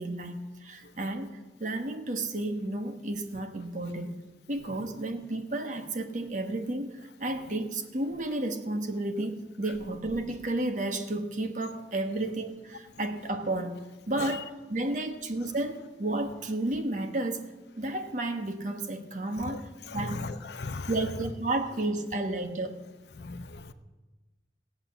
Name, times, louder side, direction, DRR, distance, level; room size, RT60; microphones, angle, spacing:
voice 1, 0.0-4.1 4.5-13.8 14.1-17.4 17.8-20.2 20.9-22.8, right 2 dB, 45° right, 6 dB, 1.4 m, -32 dB
voice 2, 19.9-20.9 23.2-23.7, left 3 dB, 70° left, 10 dB, 0.8 m, -37 dB
17.0 x 8.3 x 7.0 m, 1.2 s
head